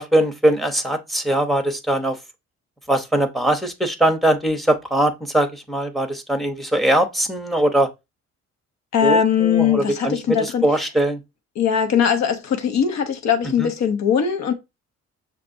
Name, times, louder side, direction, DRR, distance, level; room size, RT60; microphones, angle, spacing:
voice 1, 0.0-2.2 2.9-7.9 9.0-11.2 13.6-13.7, right 1 dB, ahead, 0.9 m, -21 dB
voice 2, 8.9-10.7 11.6-14.5, left 8 dB, 65° left, 1.0 m, -20 dB
6.5 x 2.9 x 2.7 m
cardioid pair, 90°, 30 cm